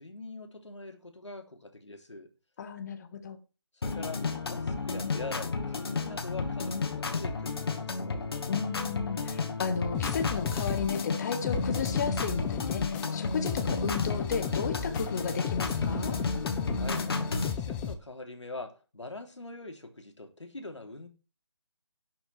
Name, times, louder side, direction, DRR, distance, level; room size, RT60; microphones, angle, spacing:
voice 1, 0.0-2.3 3.8-8.2 16.8-17.1 17.4-21.1, left 2 dB, 85° left, 3.2 m, -43 dB
voice 2, 2.6-3.4 8.5-16.2, left 6 dB, 35° left, 1.4 m, -34 dB
sound 1, 3.8-17.5, left 4 dB, 55° left, 2.4 m, -32 dB
sound 2, 9.9-17.9, left 8 dB, 10° left, 0.5 m, -36 dB
12.0 x 6.0 x 6.8 m
figure-of-eight pair, 155°, 15 cm